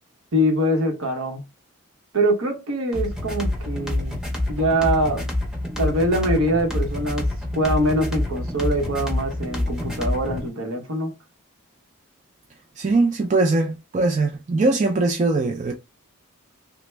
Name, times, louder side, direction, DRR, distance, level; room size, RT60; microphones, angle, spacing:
voice 1, 0.3-1.4 2.1-5.2 5.8-7.3 7.5-11.1, right 1 dB, 65° right, 0.9 m, -23 dB
sound 1, 2.9-10.5, left 1 dB, ahead, 0.7 m, -27 dB
voice 2, 12.8-15.7, right 3 dB, 30° right, 0.3 m, -21 dB
3.3 x 2.1 x 3.2 m
head